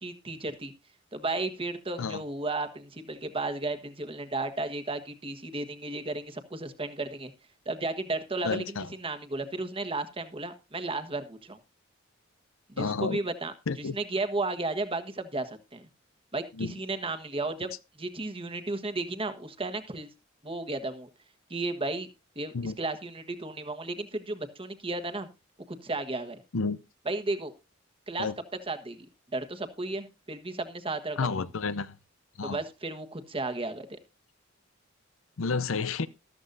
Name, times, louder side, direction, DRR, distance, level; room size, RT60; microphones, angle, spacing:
voice 1, 0.0-0.7 1.1-7.3 7.6-8.6 9.0-11.6 12.7-13.5 13.9-15.9 16.3-17.7 18.0-20.1 20.4-21.1 21.5-22.1 22.3-25.3 25.7-26.4 27.1-27.5 28.1-28.3 28.7-29.1 29.3-31.3 32.4-34.0, right 2 dB, 25° right, 1.4 m, -34 dB
voice 2, 8.4-8.9 12.8-13.2 13.7-14.0 16.5-16.8 22.5-22.8 26.5-26.8 28.2-28.3 31.2-32.0 32.4-32.6 35.4-36.1, left 4 dB, 70° left, 0.6 m, -30 dB
13.5 x 13.5 x 2.6 m
head